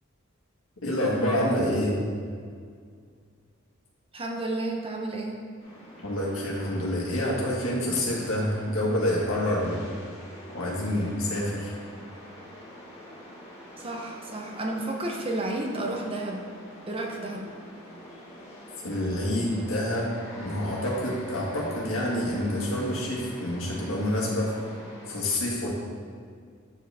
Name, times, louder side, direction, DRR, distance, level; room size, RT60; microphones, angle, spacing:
voice 1, 0.8-2.0 6.0-9.8 10.5-11.7 18.8-24.5 25.1-25.7, left 1 dB, 85° left, -4 dB, 1.7 m, -27 dB
voice 2, 4.1-5.4 13.8-16.4 16.9-17.5, right 2 dB, 30° right, 1 dB, 0.7 m, -31 dB
sound 1, 5.6-25.2, equal, 30° left, 1.9 m, -45 dB
8.7 x 5.0 x 3.5 m, 2.1 s
head